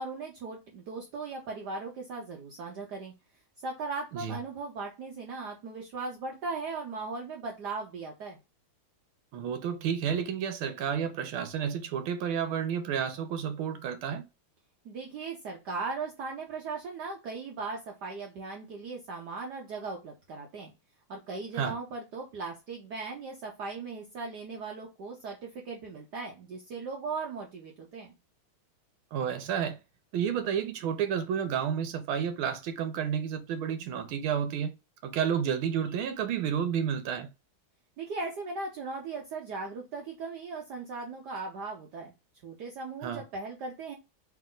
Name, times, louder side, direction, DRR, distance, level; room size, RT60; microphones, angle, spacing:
voice 1, 0.0-3.1 3.6-8.4 14.8-20.7 21.1-28.1 38.0-42.1 42.4-43.9, right 4 dB, 65° right, 1.2 m, -38 dB
voice 2, 9.3-14.2 21.5-21.8 29.1-29.8 30.1-34.7 35.0-37.3 43.0-43.2, right 8 dB, 80° right, 1.6 m, -31 dB
3.4 x 3.0 x 3.7 m
omnidirectional pair, 2.3 m